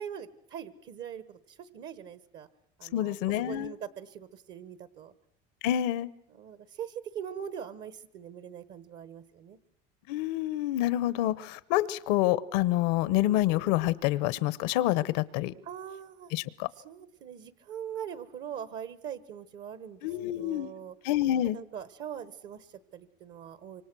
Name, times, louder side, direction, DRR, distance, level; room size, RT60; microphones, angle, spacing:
voice 1, 0.0-2.5 2.8-3.2 3.5-5.1 6.4-9.6 15.6-16.3 16.8-20.0 20.3-20.9 21.5-23.8, right 8 dB, 55° right, 14 dB, 1.3 m, -42 dB
voice 2, 2.9-3.7 5.6-6.1 10.1-15.5 16.3-16.7 20.0-20.7 21.0-21.6, left 14 dB, 85° left, 18 dB, 1.0 m, -27 dB
26.5 x 24.5 x 6.2 m, 0.69 s
cardioid pair, 125°, 21 cm